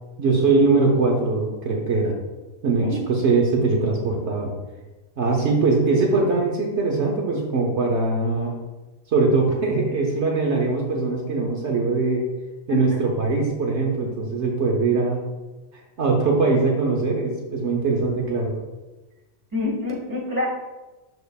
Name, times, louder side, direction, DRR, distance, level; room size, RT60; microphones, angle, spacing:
voice 1, 0.2-2.1 2.6-4.5 5.2-8.5 9.1-12.3 12.7-15.2 16.0-18.5, right 3 dB, 65° right, 0 dB, 1.1 m, -21 dB
voice 2, 19.5-20.5, left 3 dB, 15° right, -4 dB, 1.8 m, -26 dB
12.0 x 4.3 x 2.3 m, 1.1 s
omnidirectional pair, 1.3 m